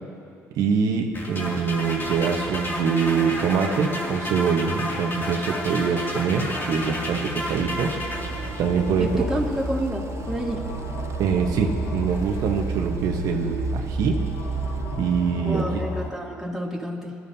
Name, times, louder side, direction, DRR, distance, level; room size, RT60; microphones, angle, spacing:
voice 1, 0.5-7.9 8.6-9.4 11.2-14.2 15.0-15.6, right 6 dB, 70° right, 1 dB, 1.2 m, -24 dB
sound 1, 1.1-8.9, left 1 dB, 35° left, 2.7 m, -31 dB
sound 2, 1.5-15.9, right 8 dB, 45° right, 0.4 m, -35 dB
sound 3, 8.1-16.1, left 3 dB, 85° left, 1.7 m, -33 dB
voice 2, 9.0-10.6 15.4-17.2, right 1 dB, 5° right, -4 dB, 2.7 m, -29 dB
22.0 x 13.0 x 2.8 m, 2.6 s
supercardioid pair, 80°, 6 cm